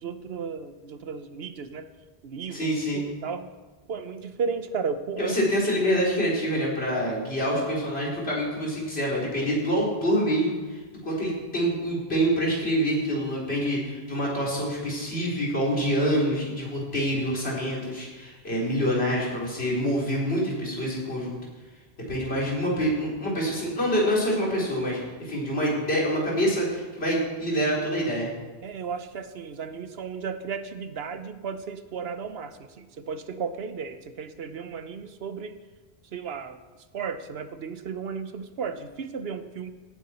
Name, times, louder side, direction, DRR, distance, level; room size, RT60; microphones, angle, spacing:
voice 1, 0.0-1.9 2.2-2.7 3.0-3.5 3.9-5.3 28.6-35.5 36.1-36.6 36.9-39.7, right 6 dB, 75° right, 11 dB, 1.0 m, -34 dB
voice 2, 2.5-3.0 5.2-21.4 22.1-28.3, equal, 75° left, -4 dB, 3.9 m, -26 dB
17.0 x 9.5 x 4.3 m, 1.3 s
omnidirectional pair, 1.1 m